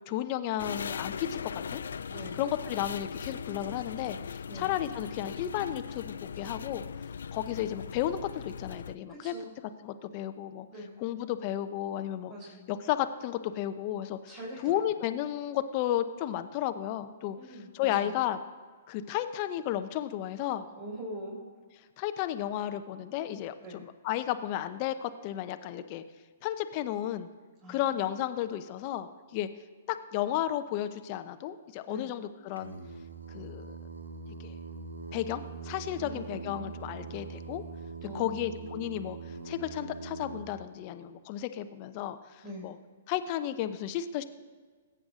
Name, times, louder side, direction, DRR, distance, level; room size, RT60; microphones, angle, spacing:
voice 1, 0.1-1.8 2.4-6.8 7.3-9.3 9.8-10.7 11.0-12.3 12.7-14.2 14.6-17.4 17.7-18.4 18.9-20.7 22.0-23.5 23.8-26.0 26.4-27.3 27.7-29.5 29.9-32.8 33.3-33.8 34.4-34.5 35.1-37.6 38.1-42.2 42.6-42.7 43.1-44.2, left 12 dB, 40° left, 9 dB, 0.8 m, -33 dB
sound 1, 0.6-9.0, left 6 dB, 70° left, 0.3 m, -39 dB
voice 2, 2.1-2.5 4.5-4.7 9.1-9.5 10.7-11.0 12.3-12.7 14.3-15.0 17.4-18.1 20.8-21.4 23.6-23.8 27.6-28.1 31.9-32.1 36.0-36.7 38.0-38.7 42.4-42.7, equal, 35° right, -5 dB, 4.2 m, -43 dB
Singing, 32.6-40.5, right 4 dB, 85° right, 1.2 m, -42 dB
21.0 x 9.1 x 3.7 m, 1.5 s
figure-of-eight pair, 120°, 0 cm